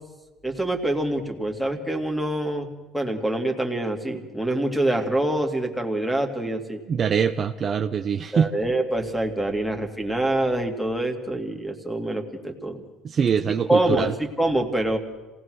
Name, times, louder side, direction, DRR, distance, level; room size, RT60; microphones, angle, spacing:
voice 1, 0.4-2.7 2.9-6.8 8.3-12.8 13.7-15.0, right 1 dB, ahead, 5 dB, 2.4 m, -25 dB
voice 2, 6.9-8.5 13.0-14.1, right 7 dB, 35° right, 7 dB, 0.8 m, -23 dB
26.5 x 18.0 x 6.3 m, 1.2 s
cardioid pair, 125°, 0 cm